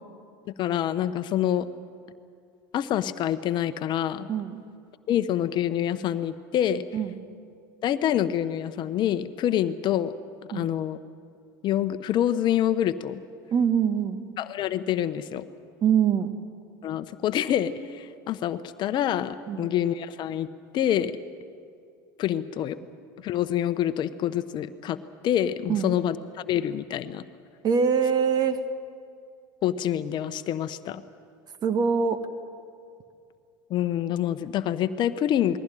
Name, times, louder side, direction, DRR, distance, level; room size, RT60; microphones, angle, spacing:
voice 1, 0.6-1.7 2.7-4.3 5.1-6.8 7.8-10.1 10.5-11.0 11.6-13.2 14.4-15.4 16.8-20.5 20.7-21.1 22.2-22.8 23.2-25.0 25.2-26.2 26.5-27.2 29.6-31.0 33.7-35.6, left 11 dB, 45° left, 12 dB, 0.9 m, -26 dB
voice 2, 4.3-4.6 6.9-7.2 10.5-10.7 13.5-14.2 15.8-16.3 19.5-19.7 25.7-25.9 27.6-28.6 31.6-32.2, right 7 dB, 40° right, 10 dB, 1.6 m, -24 dB
20.5 x 16.0 x 10.0 m, 2.3 s
hypercardioid pair, 95°, 11 cm